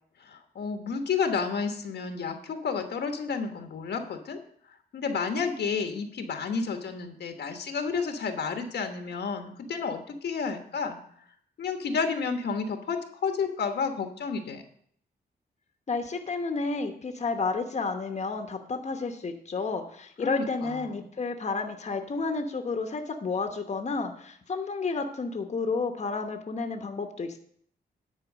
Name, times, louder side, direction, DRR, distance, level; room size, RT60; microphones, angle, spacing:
voice 1, 0.2-4.4 4.9-11.0 11.6-14.6 20.2-21.1, left 5 dB, 80° left, 5 dB, 1.2 m, -31 dB
voice 2, 15.9-27.4, left 4 dB, 40° left, 5 dB, 1.0 m, -31 dB
10.0 x 4.4 x 7.4 m, 0.65 s
cardioid pair, 95°, 17 cm